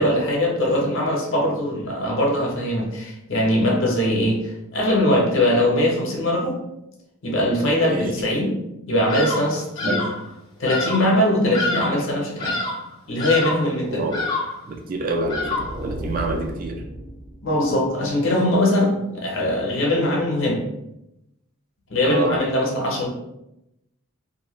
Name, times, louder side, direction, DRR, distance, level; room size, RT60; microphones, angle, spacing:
voice 1, 0.0-6.5 7.2-8.6 8.9-9.9 10.6-12.6 13.1-14.1 17.4-20.6 21.9-23.1, left 1 dB, 60° left, -2 dB, 0.7 m, -21 dB
voice 2, 7.8-8.3 9.9-10.1 11.6-11.8 13.9-14.3 14.7-16.8 22.0-22.4, right 2 dB, 40° right, 3 dB, 0.3 m, -27 dB
Bird vocalization bird call bird song, 9.1-9.5 9.8-10.2 10.7-11.1 11.5-12.1 12.4-12.9 13.2-13.7 14.1-14.6 15.3-15.8, left 2 dB, 20° left, 0.5 m, -27 dB
sound 1, 15.0-17.9, right 1 dB, 85° right, 0.6 m, -34 dB
2.6 x 2.2 x 2.9 m, 0.87 s
head